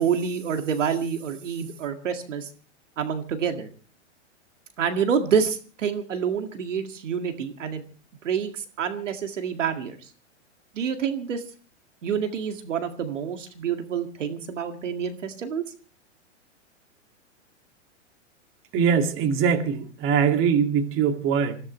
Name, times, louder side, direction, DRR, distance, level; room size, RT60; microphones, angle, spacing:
voice 1, 0.0-2.5 3.0-3.7 4.8-7.8 8.2-10.0 10.7-11.4 12.0-15.6, right 7 dB, 80° right, 6 dB, 2.1 m, -27 dB
voice 2, 18.7-21.6, right 7 dB, 35° right, 6 dB, 2.2 m, -22 dB
25.0 x 15.5 x 3.2 m, 0.38 s
hypercardioid pair, 125°, 37 cm